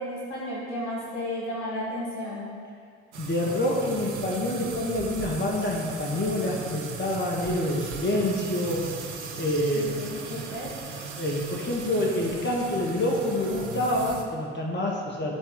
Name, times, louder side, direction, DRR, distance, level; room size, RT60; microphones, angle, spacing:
voice 1, 0.0-2.5 9.7-10.7, left 1 dB, 80° left, -6 dB, 1.6 m, -33 dB
sound 1, 3.1-14.2, right 5 dB, 80° right, 0.8 m, -38 dB
voice 2, 3.2-8.9 9.4-10.1 11.2-15.4, left 1 dB, 30° left, -2 dB, 1.7 m, -27 dB
13.0 x 4.3 x 3.7 m, 2.3 s
figure-of-eight pair, 50°, 35 cm